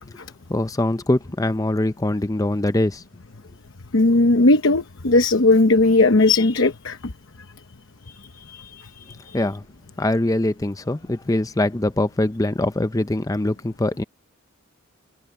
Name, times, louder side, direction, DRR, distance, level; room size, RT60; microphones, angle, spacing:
voice 1, 0.5-3.0 9.3-9.6 10.0-14.0, left 1 dB, 15° left, 0.5 m, -23 dB
voice 2, 3.9-7.0 8.4-9.4, left 2 dB, 65° left, 0.9 m, -18 dB
head